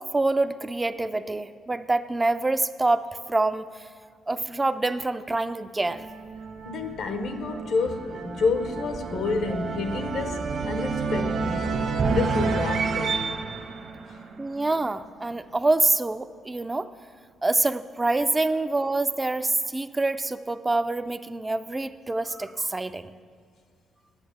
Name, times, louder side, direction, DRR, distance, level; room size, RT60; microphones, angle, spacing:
voice 1, 0.1-3.9 4.3-6.1 14.4-16.9 17.4-23.1, right 2 dB, 20° right, 0.4 m, -26 dB
sound 1, 5.8-14.9, right 4 dB, 60° right, 1.0 m, -30 dB
voice 2, 6.6-11.8 12.1-13.2 14.1-14.2, left 4 dB, 70° left, 1.0 m, -29 dB
9.7 x 6.5 x 7.9 m
cardioid pair, 90°, 0 cm